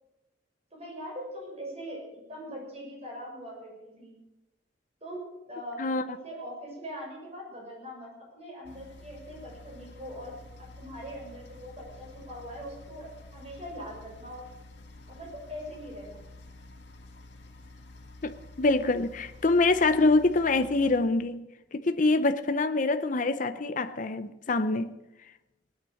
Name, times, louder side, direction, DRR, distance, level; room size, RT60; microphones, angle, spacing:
voice 1, 0.7-4.1 5.0-5.8 6.1-10.3 10.6-14.4 15.1-16.2, equal, 35° right, 6.6 m, -42 dB
sound 1, 8.6-21.0, left 2 dB, 75° left, 2.1 m, -49 dB
voice 2, 18.2-21.4 21.7-25.0, left 3 dB, 45° left, 0.6 m, -25 dB
19.5 x 9.8 x 6.4 m
head